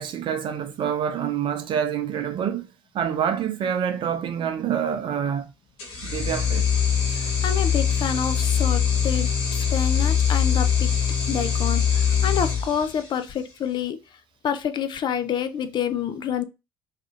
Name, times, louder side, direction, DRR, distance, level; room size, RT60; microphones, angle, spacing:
voice 1, 0.0-2.7 2.9-5.5 6.0-6.7, right 8 dB, 45° right, 0.6 m, -26 dB
sound 1, 5.8-13.4, left 7 dB, 60° left, 1.4 m, -23 dB
voice 2, 7.1-10.9 11.3-14.0 14.4-16.4, left 8 dB, 40° left, 0.6 m, -28 dB
3.4 x 2.5 x 2.5 m
figure-of-eight pair, 55°, 11 cm